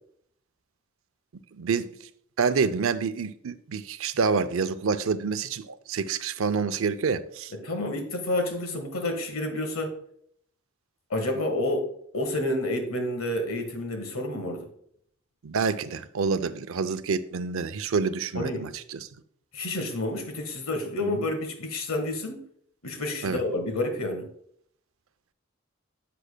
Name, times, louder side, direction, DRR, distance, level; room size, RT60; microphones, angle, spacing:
voice 1, 1.6-1.9 2.4-7.5 15.4-19.1 21.0-21.3 23.2-23.4, right 5 dB, 70° right, 0.5 m, -27 dB
voice 2, 7.6-9.9 11.1-11.9 12.1-14.7 18.3-18.7 19.5-22.4 22.8-24.2, left 1 dB, 85° left, 1.5 m, -29 dB
10.0 x 7.7 x 2.2 m
head